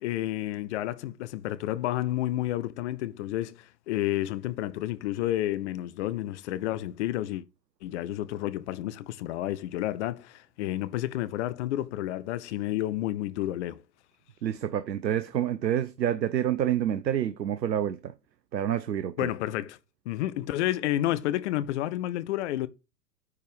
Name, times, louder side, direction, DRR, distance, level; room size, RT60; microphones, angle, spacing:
voice 1, 0.0-7.4 7.8-13.8 19.2-19.8 20.0-22.7, left 14 dB, 45° left, 0.8 m, -30 dB
voice 2, 14.4-18.1 18.5-19.3, right 10 dB, 80° right, 0.8 m, -28 dB
9.6 x 4.6 x 5.1 m
figure-of-eight pair, 110°, 50 cm